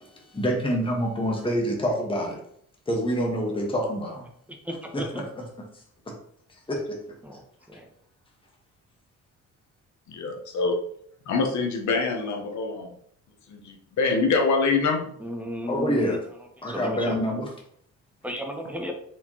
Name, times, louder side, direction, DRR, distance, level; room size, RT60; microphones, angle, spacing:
voice 1, 0.0-2.4 2.9-4.2 4.9-5.0 6.7-7.0 15.7-16.2 16.6-17.5, equal, 15° left, -1 dB, 1.3 m, -26 dB
voice 2, 4.6-5.2 7.2-7.4 7.7-7.9 15.2-16.2 16.6-17.2 18.2-18.9, equal, 5° right, 2 dB, 1.1 m, -34 dB
voice 3, 10.1-10.8 11.3-12.9 13.5-15.1, left 4 dB, 70° left, 2 dB, 1.1 m, -25 dB
4.9 x 3.4 x 3.0 m, 0.65 s
cardioid pair, 90°, 30 cm